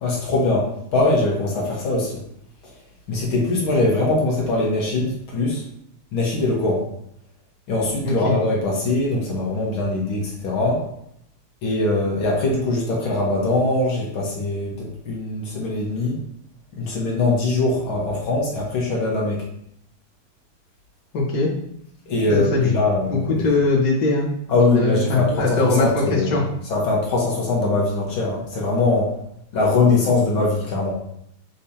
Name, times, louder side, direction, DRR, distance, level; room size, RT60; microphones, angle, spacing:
voice 1, 0.0-2.2 3.1-5.6 6.1-6.8 7.7-10.8 11.6-16.2 16.7-19.4 22.1-23.5 24.5-26.4 26.7-29.1 29.5-30.9, left 2 dB, 70° left, -3 dB, 2.1 m, -22 dB
voice 2, 8.0-8.3 21.1-21.5 22.3-22.7 23.1-24.3 24.6-26.4, left 3 dB, 50° left, -4 dB, 1.8 m, -21 dB
7.1 x 5.0 x 2.9 m, 0.73 s
omnidirectional pair, 2.4 m